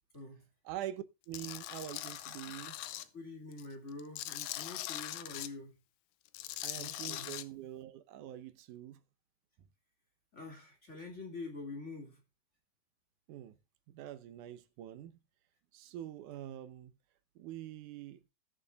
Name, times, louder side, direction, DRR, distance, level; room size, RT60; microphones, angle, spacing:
voice 1, 0.7-2.8 6.6-9.0 13.3-13.5 13.9-15.2 15.7-16.9 17.4-18.2, right 12 dB, 85° right, 2.4 m, -45 dB
Tools, 1.3-3.0 3.5-5.5 6.3-7.4, left 14 dB, 85° left, 2.2 m, -41 dB
voice 2, 3.1-5.7 6.8-7.3 10.3-12.2, left 3 dB, 25° left, 2.4 m, -46 dB
19.0 x 6.9 x 2.3 m
omnidirectional pair, 3.5 m